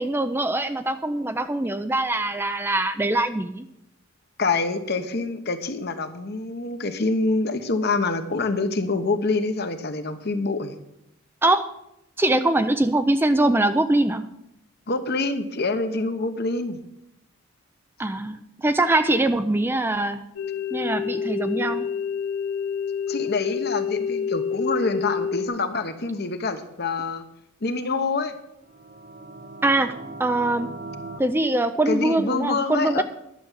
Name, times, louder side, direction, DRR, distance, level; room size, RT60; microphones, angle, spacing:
voice 1, 0.0-3.7 11.4-11.7 12.2-14.3 18.0-20.2 20.7-21.9 29.6-29.9 30.2-30.7 31.2-33.0, right 2 dB, 10° right, 9 dB, 0.4 m, -22 dB
voice 2, 4.4-10.8 14.9-16.8 23.1-27.3 27.6-28.3 31.9-33.0, left 3 dB, 50° left, 8 dB, 1.0 m, -26 dB
sound 1, 20.4-25.5, left 7 dB, 90° left, 1.0 m, -28 dB
sound 2, 28.6-31.2, right 2 dB, 50° right, 1.2 m, -39 dB
11.0 x 6.8 x 7.4 m, 0.83 s
head